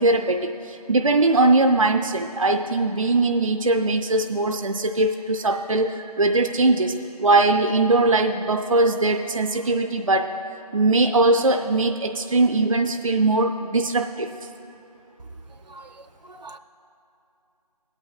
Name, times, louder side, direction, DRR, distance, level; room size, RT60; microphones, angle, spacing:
voice 1, 0.0-10.3 10.7-14.3, right 2 dB, 55° right, 4 dB, 0.4 m, -21 dB
voice 2, 16.2-16.6, right 2 dB, 85° right, 8 dB, 0.7 m, -43 dB
22.0 x 8.7 x 2.3 m, 2.8 s
figure-of-eight pair, 180°, 21 cm